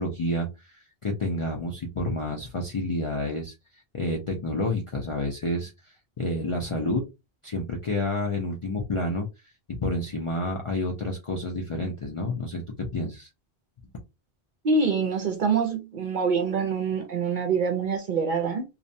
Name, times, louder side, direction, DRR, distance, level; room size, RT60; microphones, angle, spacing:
voice 1, 0.0-3.5 3.9-7.0 7.4-9.3 9.8-12.6 12.9-13.3, left 1 dB, 50° left, 0 dB, 0.3 m, -29 dB
voice 2, 14.6-18.6, right 5 dB, 55° right, 5 dB, 0.6 m, -25 dB
2.5 x 2.1 x 2.6 m, 0.25 s
omnidirectional pair, 1.1 m